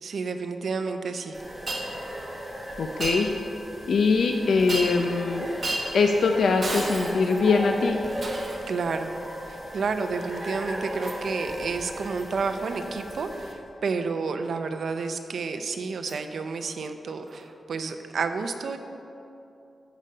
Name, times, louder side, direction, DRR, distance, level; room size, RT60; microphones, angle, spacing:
voice 1, 0.0-1.4 8.7-9.1 9.5-18.8, right 4 dB, 70° right, 7 dB, 0.6 m, -30 dB
sound 1, 1.3-13.5, equal, 15° right, 1.5 m, -37 dB
Shatter, 1.7-1.9 3.0-3.2 4.7-5.1 5.6-5.9 6.6-7.5 8.2-8.7 11.0-11.2 12.2-12.3 13.1-13.2 16.1-16.2 17.3-17.4, right 2 dB, 40° right, 1.3 m, -32 dB
voice 2, 2.8-3.3 3.9-5.5 5.9-8.0, left 4 dB, 75° left, 4 dB, 0.5 m, -22 dB
14.0 x 5.2 x 5.6 m, 2.8 s
wide cardioid pair, 125°, 0 cm